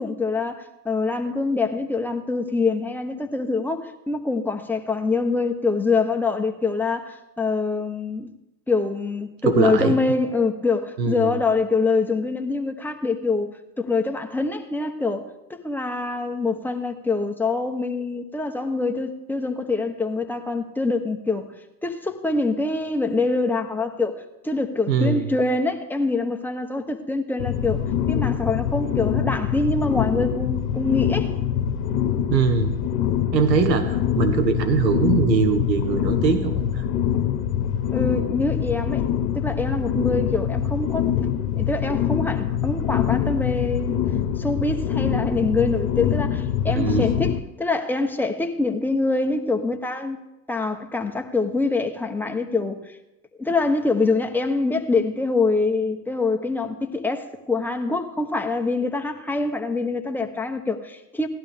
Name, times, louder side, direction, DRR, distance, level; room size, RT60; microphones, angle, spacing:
voice 1, 0.0-8.3 8.7-21.5 21.8-27.8 28.1-31.4 37.9-39.1 39.3-41.3 41.6-43.9 44.4-50.2 50.5-52.8 53.4-61.3, left 3 dB, 5° left, 0.9 m, -25 dB
voice 2, 9.4-10.0 11.0-11.4 24.9-25.3 32.3-32.7 33.3-36.8 46.7-47.0, right 5 dB, 85° right, 1.5 m, -21 dB
sound 1, 27.4-47.4, left 9 dB, 60° left, 1.1 m, -24 dB
16.5 x 11.5 x 3.5 m
hypercardioid pair, 100°, 49 cm